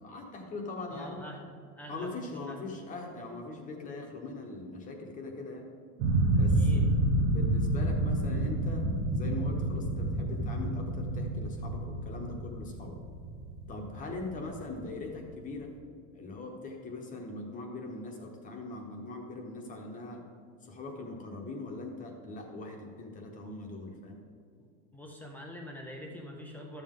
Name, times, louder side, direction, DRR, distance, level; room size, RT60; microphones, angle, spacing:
voice 1, 0.0-1.2 1.9-5.7 6.3-6.9 7.2-13.0 13.7-15.7 16.1-20.2 20.6-24.2, left 2 dB, 20° left, 2 dB, 0.9 m, -41 dB
voice 2, 0.9-1.5 1.8-2.7 6.5-6.8 24.9-26.8, left 1 dB, 5° left, 0 dB, 0.3 m, -45 dB
sound 1, 6.0-14.8, right 1 dB, 25° right, 0.8 m, -29 dB
12.0 x 7.4 x 3.7 m, 2.2 s
supercardioid pair, 165°, 36 cm